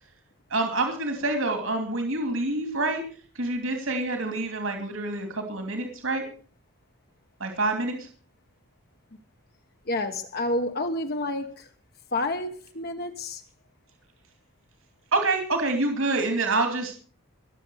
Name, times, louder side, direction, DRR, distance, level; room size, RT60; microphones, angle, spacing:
voice 1, 0.5-3.0 3.3-6.2 7.4-8.0 15.1-16.9, right 2 dB, 65° right, 2.8 m, -27 dB
voice 2, 9.9-11.7 12.1-13.4, left 2 dB, 45° left, 1.2 m, -29 dB
20.5 x 7.7 x 6.4 m
head